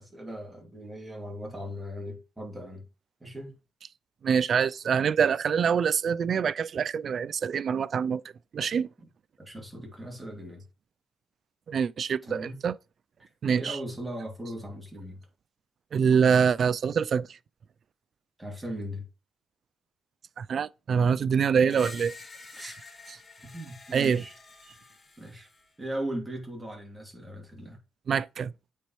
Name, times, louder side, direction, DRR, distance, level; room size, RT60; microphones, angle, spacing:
voice 1, 0.0-2.8 3.2-3.5 9.4-10.6 12.2-12.6 13.2-13.3 13.6-15.2 18.4-19.0 22.5-22.9 23.4-24.3 25.2-25.5 25.8-27.8, equal, 10° right, 2.6 m, -38 dB
voice 2, 4.2-8.2 8.5-8.9 11.7-12.7 13.4-13.8 15.9-17.3 20.4-22.1 23.9-24.2 28.1-28.5, right 7 dB, 55° right, 0.3 m, -25 dB
Screech, 21.7-25.7, left 3 dB, 30° left, 1.3 m, -48 dB
8.2 x 4.3 x 3.1 m
cardioid pair, 90°, 0 cm